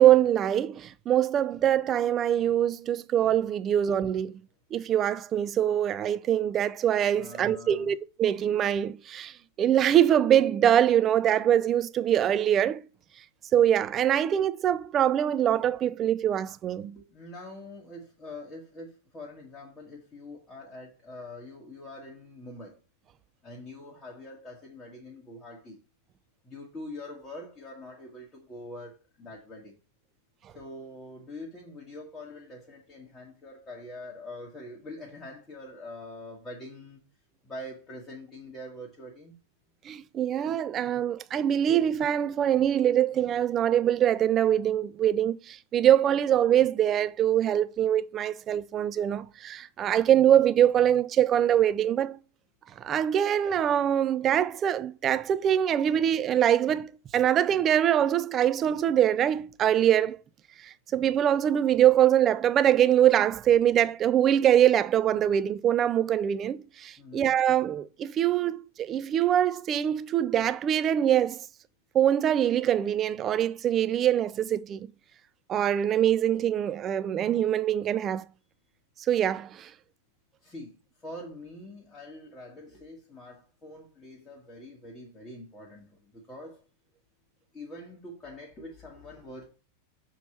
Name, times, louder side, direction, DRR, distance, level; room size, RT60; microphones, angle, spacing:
voice 1, 0.0-4.4 4.7-12.8 13.5-17.0 39.9-52.2 52.8-60.2 60.6-71.4 71.9-74.8 75.5-78.2 79.1-79.7, right 10 dB, 30° right, 0.4 m, -24 dB
voice 2, 7.1-7.9 16.7-22.8 23.4-25.8 26.4-29.7 30.5-37.0 37.4-39.3 67.0-67.3 80.4-86.6 87.5-89.5, left 1 dB, 15° left, 1.5 m, -44 dB
6.8 x 3.0 x 5.9 m
figure-of-eight pair, 90°, 0 cm